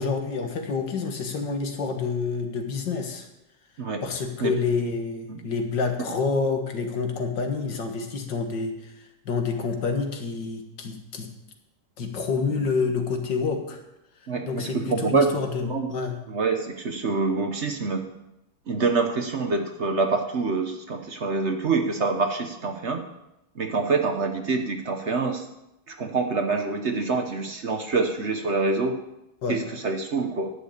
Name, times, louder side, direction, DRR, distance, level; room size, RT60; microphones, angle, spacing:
voice 1, 0.0-3.3 4.0-8.9 9.3-11.3 12.0-13.8 14.4-16.1 29.4-29.6, left 4 dB, 80° left, 5 dB, 2.2 m, -28 dB
voice 2, 14.3-15.3 15.6-15.9 16.3-18.0 18.7-23.0 23.6-25.5 25.9-29.0 29.5-30.5, right 4 dB, 45° right, 5 dB, 1.1 m, -26 dB
10.5 x 6.9 x 8.6 m, 0.90 s
omnidirectional pair, 1.9 m